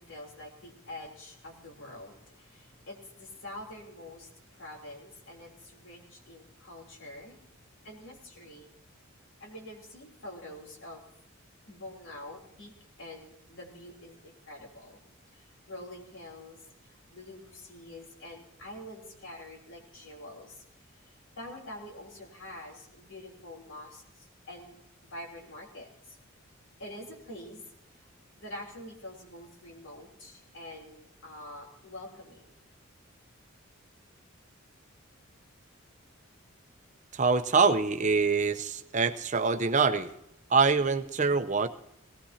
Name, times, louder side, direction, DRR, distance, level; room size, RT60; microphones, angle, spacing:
voice 1, 0.0-7.4 7.8-8.7 9.4-11.0 11.7-12.7 13.0-15.0 15.3-20.6 21.0-26.2 26.8-27.6 28.0-28.1 28.4-32.5, left 1 dB, 65° left, 0 dB, 3.4 m, -46 dB
voice 2, 37.1-40.1 40.5-41.7, right 4 dB, 35° right, 9 dB, 0.7 m, -25 dB
19.0 x 18.0 x 2.8 m, 0.82 s
head